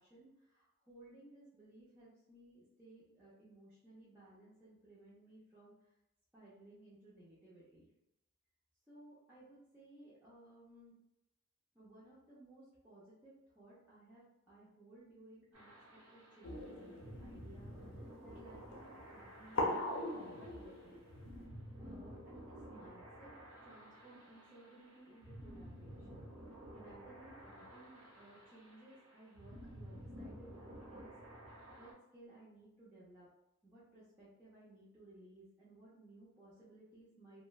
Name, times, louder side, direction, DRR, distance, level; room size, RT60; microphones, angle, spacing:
voice 1, 0.0-5.9 6.3-7.9 8.9-11.0 11.7-21.0 21.8-23.3 23.6-26.3 26.7-31.1 31.5-33.3 33.6-37.4, right 1 dB, 10° right, -11 dB, 0.5 m, -59 dB
sound 1, 15.5-31.9, equal, 75° right, 0.8 m, -53 dB
sound 2, 16.4-21.5, left 1 dB, 60° left, 0.5 m, -42 dB
2.9 x 2.1 x 2.3 m, 0.88 s
head